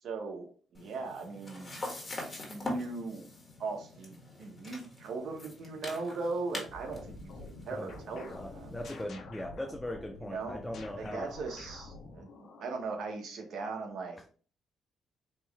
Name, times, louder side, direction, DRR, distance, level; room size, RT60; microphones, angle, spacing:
voice 1, 0.0-1.8 2.4-3.3 3.6-8.7 10.2-10.6 11.0-14.2, right 3 dB, 70° right, 3 dB, 1.2 m, -39 dB
sound 1, 0.7-9.0, left 2 dB, 25° left, 1.9 m, -44 dB
sound 2, 6.7-12.9, left 2 dB, 65° left, 1.2 m, -48 dB
voice 2, 7.7-11.3, left 1 dB, 10° left, 3 dB, 0.6 m, -40 dB
4.4 x 3.0 x 3.5 m, 0.41 s
cardioid pair, 90°, 0 cm